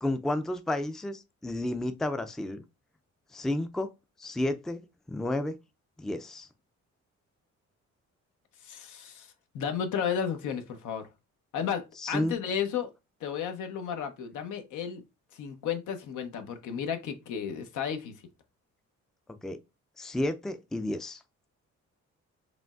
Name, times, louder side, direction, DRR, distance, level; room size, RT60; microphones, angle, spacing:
voice 1, 0.0-2.6 3.3-3.9 4.2-5.5 6.0-6.5 12.0-12.3 19.4-19.6 20.0-21.2, left 1 dB, ahead, 0.4 m, -31 dB
voice 2, 8.6-9.3 9.5-11.1 11.5-12.9 13.2-15.0 15.3-18.1, left 7 dB, 80° left, 0.8 m, -33 dB
5.0 x 3.0 x 2.3 m
cardioid pair, 90°, 30 cm